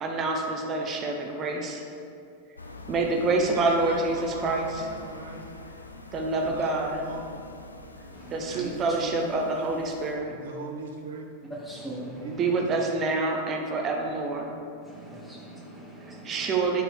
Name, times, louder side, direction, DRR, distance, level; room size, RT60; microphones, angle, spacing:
voice 1, 0.0-1.8 2.9-4.9 6.1-7.1 8.3-10.3 12.4-14.5 16.2-16.8, right 3 dB, 30° right, 1 dB, 1.0 m, -27 dB
sound 1, 2.6-10.2, left 2 dB, 80° left, 0.5 m, -44 dB
voice 2, 3.5-5.6 6.4-7.3 8.5-9.3 10.3-11.2 12.2-12.7, right 3 dB, 60° right, 3 dB, 0.9 m, -40 dB
voice 3, 8.1-9.0 11.5-12.7 14.8-16.6, right 1 dB, 5° left, -5 dB, 1.3 m, -41 dB
9.4 x 4.6 x 4.9 m, 2.6 s
figure-of-eight pair, 90°, 0 cm